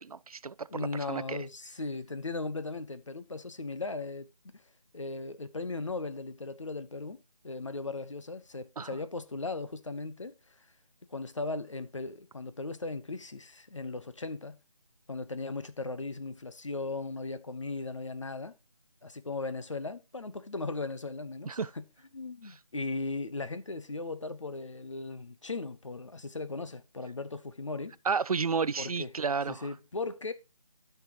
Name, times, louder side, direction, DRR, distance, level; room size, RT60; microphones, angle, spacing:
voice 1, 0.0-1.4 8.8-8.9 21.5-21.7 28.0-29.7, right 5 dB, 70° right, 0.5 m, -32 dB
voice 2, 0.7-4.6 4.9-10.3 11.1-14.6 15.1-18.5 19.0-21.8 22.1-28.0 28.8-29.1 29.5-30.3, left 3 dB, 55° left, 0.9 m, -37 dB
13.0 x 5.9 x 2.9 m
figure-of-eight pair, 175°, 19 cm